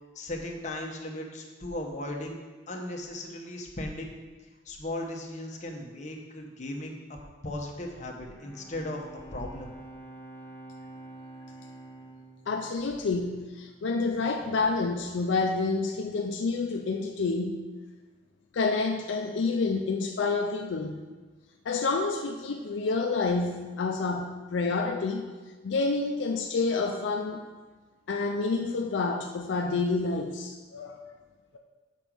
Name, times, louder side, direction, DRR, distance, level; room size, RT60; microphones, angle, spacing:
voice 1, 0.1-2.4 2.7-4.1 4.6-9.0 9.3-9.7, left 1 dB, 40° left, 1 dB, 1.0 m, -37 dB
Bowed string instrument, 8.3-13.8, right 2 dB, 10° left, 1.0 m, -48 dB
voice 2, 12.5-17.7 18.5-21.0 21.6-25.3 25.6-27.4 28.1-31.0, left 3 dB, 75° left, 3 dB, 0.4 m, -28 dB
5.3 x 5.0 x 6.1 m, 1.3 s
head